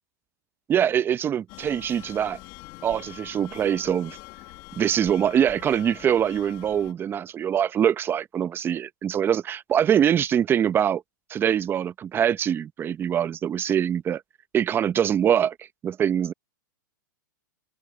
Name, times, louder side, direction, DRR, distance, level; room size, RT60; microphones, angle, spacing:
voice 1, 0.7-2.4 2.8-4.2 4.8-11.0 11.3-14.2 14.5-15.5 15.8-16.3, right 9 dB, 20° right, 0.8 m, -23 dB
sound 1, 1.5-6.9, left 23 dB, 40° left, 1.5 m, -44 dB
hypercardioid pair, 130°, 11 cm